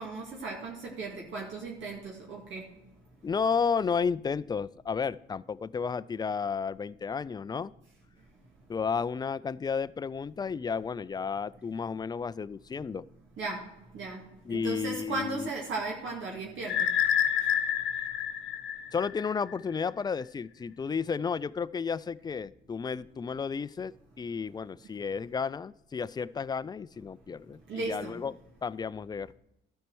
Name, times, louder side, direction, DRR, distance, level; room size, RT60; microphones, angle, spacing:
voice 1, 0.0-2.6 13.4-16.9 27.7-28.1, right 3 dB, 75° right, -2 dB, 2.1 m, -36 dB
voice 2, 3.2-7.7 8.7-13.0 14.4-15.5 18.9-29.3, left 6 dB, 20° left, 17 dB, 0.3 m, -32 dB
sound 1, 16.7-19.5, left 9 dB, 70° left, 0.9 m, -28 dB
12.5 x 4.4 x 6.1 m, 0.85 s
cardioid pair, 90°, 20 cm